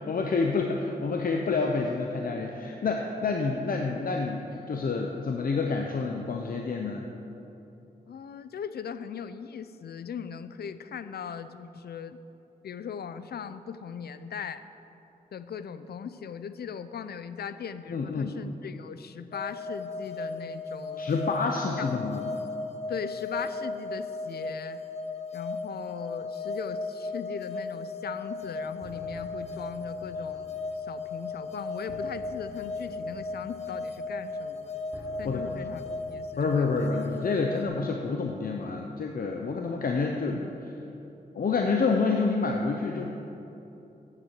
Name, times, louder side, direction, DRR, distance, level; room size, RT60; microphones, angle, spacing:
voice 1, 0.0-7.0 17.9-18.3 21.0-22.2 35.2-35.4 36.4-40.7 41.3-43.1, left 4 dB, 65° left, 2 dB, 0.8 m, -28 dB
voice 2, 8.1-12.2 12.6-14.7 15.3-21.1 21.8-21.9 22.9-24.8 25.3-34.8 35.2-35.8 36.1-36.9, left 7 dB, 85° left, 12 dB, 0.5 m, -39 dB
sound 1, 19.3-37.6, left 3 dB, 45° left, 1.0 m, -36 dB
sound 2, 28.4-36.1, right 2 dB, 20° right, 1.1 m, -50 dB
9.0 x 7.4 x 8.3 m, 2.9 s
cardioid pair, 65°, 16 cm